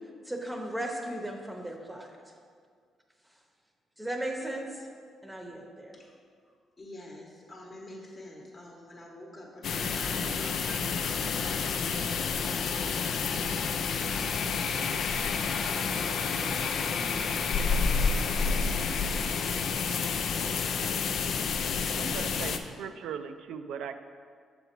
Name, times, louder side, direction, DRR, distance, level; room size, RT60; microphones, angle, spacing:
voice 1, 0.3-2.1 4.0-4.7 5.2-5.9, right 1 dB, 5° right, 1 dB, 0.8 m, -36 dB
voice 2, 6.8-15.1, left 1 dB, 30° left, -1 dB, 1.0 m, -48 dB
sound 1, 9.6-22.6, left 5 dB, 65° left, 0.4 m, -29 dB
voice 3, 21.9-24.0, right 7 dB, 80° right, 9 dB, 0.3 m, -39 dB
6.8 x 3.9 x 4.5 m, 2.1 s
cardioid pair, 90°, 0 cm